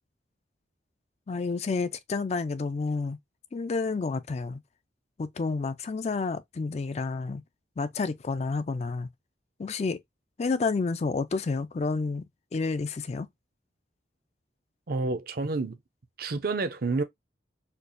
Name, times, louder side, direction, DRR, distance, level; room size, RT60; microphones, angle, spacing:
voice 1, 1.3-3.2 3.5-4.6 5.2-7.4 7.8-9.1 9.6-10.0 10.4-12.2 12.5-13.3, left 4 dB, 35° left, 0.3 m, -30 dB
voice 2, 14.9-15.8 16.2-17.0, right 3 dB, 55° right, 0.5 m, -29 dB
4.4 x 2.4 x 2.5 m
head